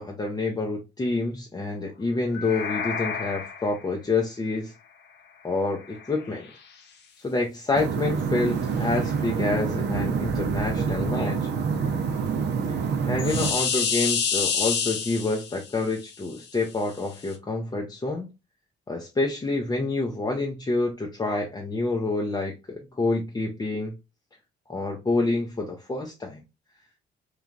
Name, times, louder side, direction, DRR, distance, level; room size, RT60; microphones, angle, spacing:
voice 1, 0.0-4.7 5.4-6.5 7.2-11.5 12.7-12.8 13.1-18.3 18.9-23.9 24.7-26.4, left 3 dB, 20° left, 0.6 m, -28 dB
sound 1, 2.3-3.8 6.0-6.1 9.1-11.6 13.2-15.8 17.3-17.4, left 6 dB, 60° left, 0.7 m, -29 dB
sound 2, 7.7-13.5, right 6 dB, 60° right, 0.6 m, -27 dB
3.1 x 2.3 x 2.4 m
cardioid pair, 90°, 20 cm